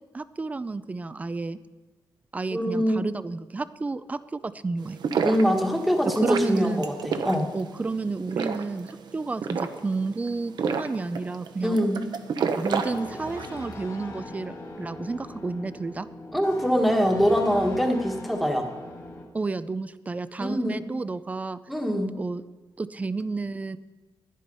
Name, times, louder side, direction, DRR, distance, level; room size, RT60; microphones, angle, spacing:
voice 1, 0.1-1.6 2.3-5.0 6.2-6.9 7.5-11.8 12.6-16.1 19.3-21.6 22.2-22.4 22.8-23.8, right 3 dB, 20° right, 15 dB, 0.4 m, -31 dB
voice 2, 2.5-3.0 5.2-7.5 11.6-12.0 16.3-18.7 20.4-20.8 21.7-22.1, equal, ahead, 3 dB, 1.4 m, -24 dB
sound 1, 4.8-13.6, right 6 dB, 60° right, 0.8 m, -31 dB
sound 2, 12.7-19.2, left 2 dB, 45° left, 1.8 m, -40 dB
11.5 x 11.0 x 5.4 m, 1.2 s
wide cardioid pair, 160°, 8 cm